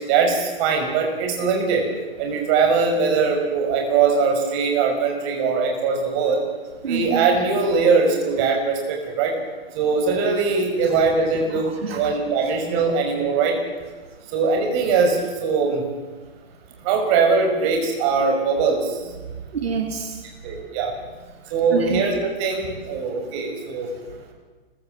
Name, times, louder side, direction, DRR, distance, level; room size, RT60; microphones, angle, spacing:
voice 1, 0.1-1.8 2.2-6.4 6.8-9.3 9.7-13.5 14.3-15.8 16.8-18.8 20.4-20.9 21.5-23.9, right 5 dB, 30° right, 2 dB, 6.1 m, -21 dB
voice 2, 6.8-7.3 11.5-12.1 19.5-20.2 21.7-22.0, right 5 dB, 80° right, 4 dB, 3.4 m, -27 dB
29.5 x 16.5 x 7.7 m, 1.3 s
hypercardioid pair, 155°, 30 cm